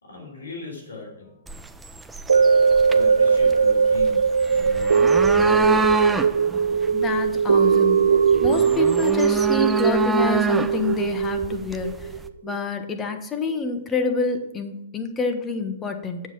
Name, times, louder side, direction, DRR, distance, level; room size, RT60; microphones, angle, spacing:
voice 1, 0.0-1.7 2.3-6.0, left 3 dB, 85° left, 0 dB, 3.6 m, -38 dB
sound 1, 1.5-12.3, right 2 dB, 10° right, 0.6 m, -28 dB
sound 2, 2.3-12.7 13.1-13.2, right 6 dB, 85° right, 0.4 m, -20 dB
voice 2, 6.9-8.1 8.4-12.1 12.4-16.2, left 4 dB, 20° left, 6 dB, 1.3 m, -27 dB
8.0 x 7.2 x 6.3 m, 0.90 s
hypercardioid pair, 120°, 0 cm